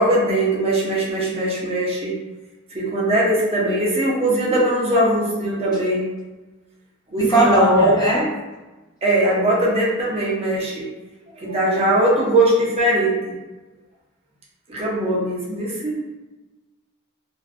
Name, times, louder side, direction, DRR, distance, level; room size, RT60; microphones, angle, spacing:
voice 1, 0.0-2.1 2.7-6.2 7.1-8.0 9.0-10.8 11.4-13.3 14.7-16.1, right 1 dB, 30° right, -4 dB, 0.5 m, -20 dB
voice 2, 7.2-8.3, right 1 dB, 20° left, -5 dB, 0.6 m, -18 dB
2.5 x 2.3 x 2.4 m, 1.1 s
head